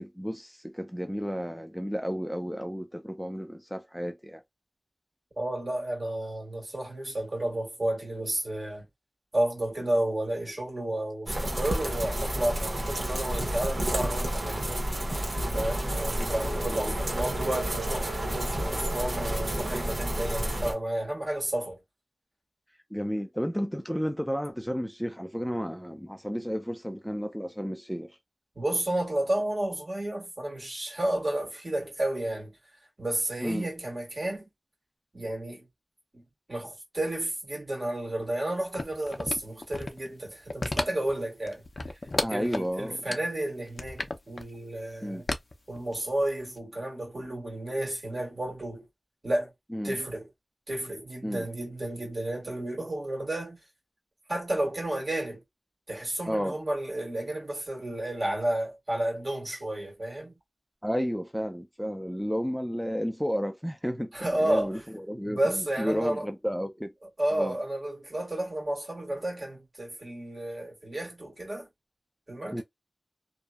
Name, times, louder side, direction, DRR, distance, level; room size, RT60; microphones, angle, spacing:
voice 1, 0.0-4.4 16.2-16.3 16.7-16.9 22.9-28.2 33.4-33.7 42.2-43.0 45.0-45.2 49.7-50.0 51.2-51.5 56.3-56.6 60.8-66.9 67.3-67.6 72.5-72.6, equal, ahead, 0.4 m, -32 dB
voice 2, 5.4-8.9 9.3-14.7 15.5-21.8 28.5-32.6 33.0-34.5 35.1-35.7 36.1-41.6 42.3-45.3 45.7-48.9 49.2-49.5 49.8-50.3 50.7-53.6 54.3-55.4 55.9-60.3 64.1-64.8 65.2-66.3 67.2-71.7 72.3-72.6, right 1 dB, 55° right, 1.6 m, -31 dB
sound 1, 11.3-20.7, right 1 dB, 80° right, 0.9 m, -30 dB
sound 2, 38.7-40.1 40.4-41.1 41.5-42.7 43.1-43.2 43.7-44.4 45.3-46.2 46.6-46.7, left 2 dB, 70° left, 0.5 m, -32 dB
2.7 x 2.0 x 2.3 m
wide cardioid pair, 55°, 0 cm